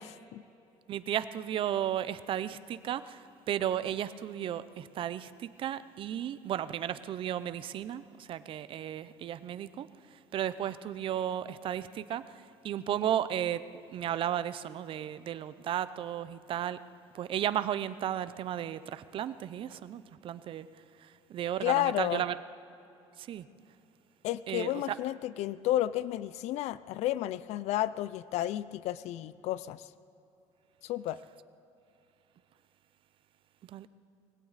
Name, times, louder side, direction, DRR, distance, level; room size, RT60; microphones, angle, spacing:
voice 1, 0.9-9.9 10.1-12.2 12.6-13.6 13.9-16.8 17.1-20.7 21.0-22.4 23.2-23.5 24.5-25.0 33.7-33.9, right 10 dB, 45° right, 14 dB, 0.6 m, -34 dB
voice 2, 21.6-22.2 24.2-29.9 30.8-31.2, left 14 dB, 70° left, 17 dB, 0.4 m, -31 dB
21.0 x 16.5 x 4.1 m, 2.8 s
cardioid pair, 140°, 12 cm